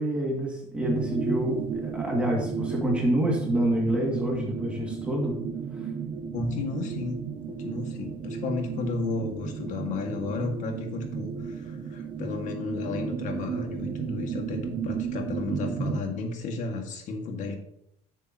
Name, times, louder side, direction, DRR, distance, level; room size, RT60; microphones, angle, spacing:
voice 1, 0.0-5.4 5.8-5.9, right 1 dB, 10° right, -2 dB, 2.4 m, -27 dB
sound 1, 0.8-16.0, right 6 dB, 30° right, 0.7 m, -34 dB
voice 2, 6.3-7.2 7.5-17.5, left 3 dB, 60° left, 3 dB, 2.0 m, -33 dB
10.5 x 7.0 x 3.0 m, 0.74 s
supercardioid pair, 110°, 15 cm